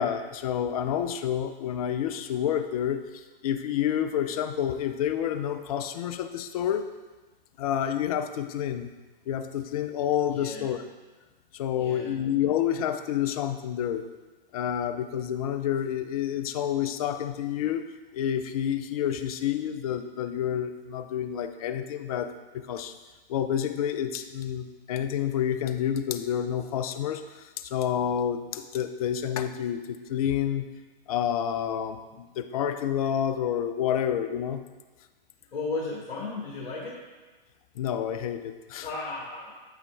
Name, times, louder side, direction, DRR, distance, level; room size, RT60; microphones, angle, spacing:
voice 1, 0.0-6.8 7.6-8.9 9.3-10.8 11.5-14.1 14.5-17.9 18.1-22.9 23.3-30.7 31.1-34.6 37.8-38.9, left 9 dB, 40° left, 10 dB, 0.4 m, -29 dB
voice 2, 10.3-10.7 11.7-12.1 35.5-37.0 38.8-39.5, left 3 dB, 60° left, -4 dB, 1.3 m, -35 dB
7.8 x 5.8 x 2.3 m, 1.2 s
figure-of-eight pair, 110°, 29 cm